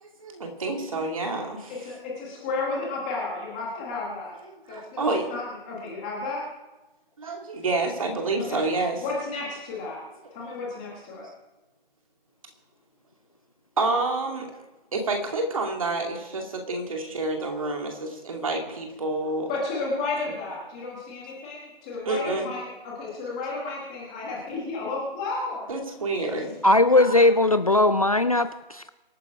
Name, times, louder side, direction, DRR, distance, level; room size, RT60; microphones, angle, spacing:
voice 1, 0.0-1.7 4.7-5.3 7.2-9.0 10.4-10.5 13.8-14.5 14.9-19.5 22.1-22.5 25.7-26.5, right 2 dB, 35° right, 2 dB, 2.4 m, -28 dB
voice 2, 1.8-4.3 4.7-6.4 8.5-8.6 9.0-10.0 10.3-11.3 19.5-25.7 26.9-27.0, left 3 dB, 5° left, -4 dB, 1.3 m, -32 dB
voice 3, 26.6-28.9, left 2 dB, 40° left, 11 dB, 0.4 m, -19 dB
24.0 x 9.2 x 4.9 m, 1.1 s
hypercardioid pair, 175°, 29 cm